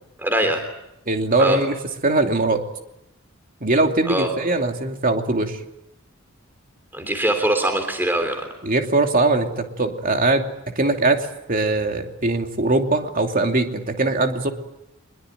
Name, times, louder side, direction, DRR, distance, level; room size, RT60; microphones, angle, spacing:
voice 1, 0.2-0.6 1.4-1.6 4.1-4.3 6.9-8.5, right 1 dB, 10° right, 5 dB, 3.3 m, -22 dB
voice 2, 1.1-1.8 2.0-2.6 3.6-5.6 8.6-14.5, right 2 dB, 45° right, 4 dB, 2.8 m, -21 dB
24.5 x 22.0 x 9.2 m, 0.87 s
head